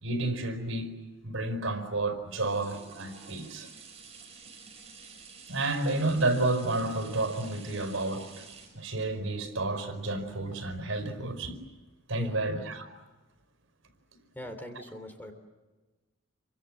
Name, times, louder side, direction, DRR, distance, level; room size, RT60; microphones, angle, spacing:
voice 1, 0.0-1.0 1.2-3.7 5.5-8.4 8.7-11.6 12.1-12.9 14.7-14.8, right 2 dB, 75° right, 5.0 m, -31 dB
sound 1, 2.2-11.0 11.6-11.7, right 5 dB, 30° right, 6.1 m, -51 dB
voice 2, 14.3-15.3, equal, 10° left, 3.3 m, -42 dB
28.0 x 25.0 x 7.6 m
head